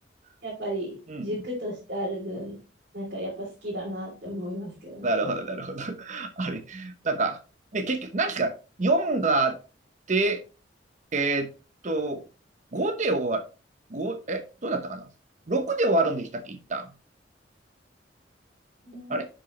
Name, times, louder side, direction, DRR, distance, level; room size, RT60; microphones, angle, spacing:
voice 1, 0.4-2.6 2.9-5.1 18.8-19.2, equal, 60° right, 2.9 m, -34 dB
voice 2, 5.0-7.4 7.7-9.6 10.1-10.4 11.1-11.5 11.8-12.2 12.7-13.4 13.9-15.1 15.5-16.9 19.1-19.3, right 2 dB, 40° right, 0.9 m, -27 dB
11.0 x 4.9 x 3.1 m
head